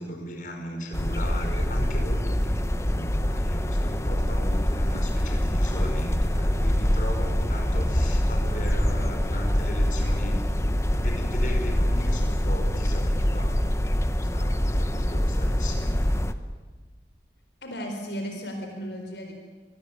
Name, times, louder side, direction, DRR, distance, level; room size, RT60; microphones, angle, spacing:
voice 1, 0.0-16.4, equal, 45° left, 2 dB, 5.1 m, -37 dB
sound 1, 0.9-16.3, equal, 15° left, 0.9 m, -24 dB
voice 2, 17.6-19.3, equal, 75° left, 3 dB, 4.4 m, -35 dB
26.5 x 19.0 x 9.2 m, 1.4 s
head